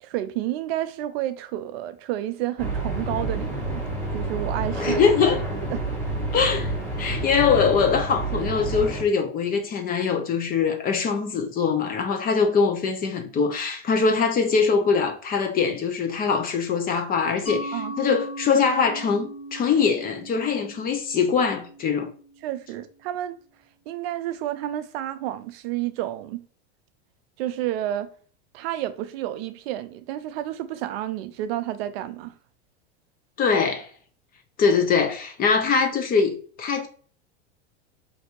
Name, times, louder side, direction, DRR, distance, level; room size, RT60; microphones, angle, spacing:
voice 1, 0.0-3.8 4.1-5.0 5.7-5.8 17.7-18.2 22.4-23.4 23.9-26.4 27.4-28.1 28.5-32.3, right 13 dB, 60° right, 0.5 m, -30 dB
sound 1, 2.6-9.0, right 2 dB, 5° left, 1.3 m, -29 dB
voice 2, 4.8-5.4 6.3-6.7 7.0-22.1 33.4-33.9 34.6-36.9, left 5 dB, 25° left, 0.5 m, -22 dB
Mallet percussion, 17.5-22.8, equal, 80° left, 1.7 m, -38 dB
3.5 x 2.6 x 2.8 m
hypercardioid pair, 115°, 34 cm